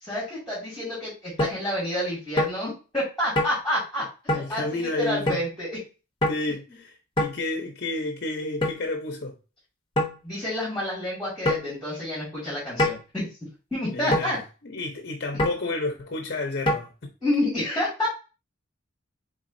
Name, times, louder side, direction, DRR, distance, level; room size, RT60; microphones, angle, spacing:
voice 1, 0.0-5.7 10.2-13.3 13.7-14.4 17.2-18.1, left 1 dB, ahead, 2.1 m, -29 dB
sound 1, 1.4-1.6 2.4-2.6 3.3-3.6 4.3-4.5 5.3-5.4 6.2-6.4 7.2-7.4 8.6-8.8 10.0-10.2 11.4-11.7 12.8-13.0 14.1-14.3 15.4-15.6 16.7-16.8, left 1 dB, 25° left, 0.9 m, -24 dB
voice 2, 4.3-5.4 6.3-9.4 13.9-14.3 14.6-16.9, left 2 dB, 50° left, 0.7 m, -31 dB
4.1 x 3.8 x 2.6 m
head